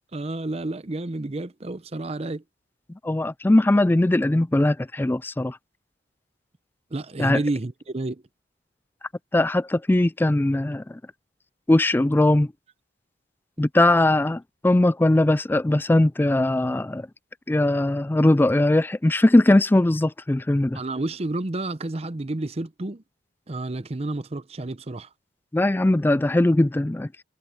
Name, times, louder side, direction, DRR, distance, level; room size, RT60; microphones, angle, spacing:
voice 1, 0.1-2.4 6.9-8.2 20.7-23.0 23.5-25.1, right 2 dB, 35° right, 0.7 m, -30 dB
voice 2, 3.0-5.6 7.2-7.4 9.3-11.0 11.7-12.5 13.6-17.1 17.5-20.8 25.5-27.1, left 1 dB, 10° left, 0.3 m, -20 dB
head